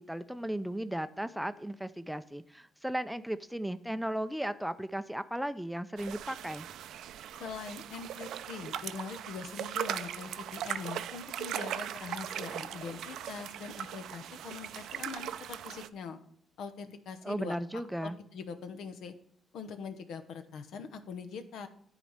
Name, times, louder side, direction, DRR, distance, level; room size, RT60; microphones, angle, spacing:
voice 1, 0.0-6.7 17.2-18.2, right 1 dB, 5° right, 12 dB, 0.4 m, -36 dB
sound 1, 6.0-15.9, right 10 dB, 80° right, 0.4 m, -39 dB
voice 2, 7.4-16.2 16.6-19.1 19.5-21.7, left 5 dB, 75° left, 9 dB, 0.9 m, -43 dB
10.0 x 4.1 x 6.4 m, 0.66 s
cardioid pair, 90°, 0 cm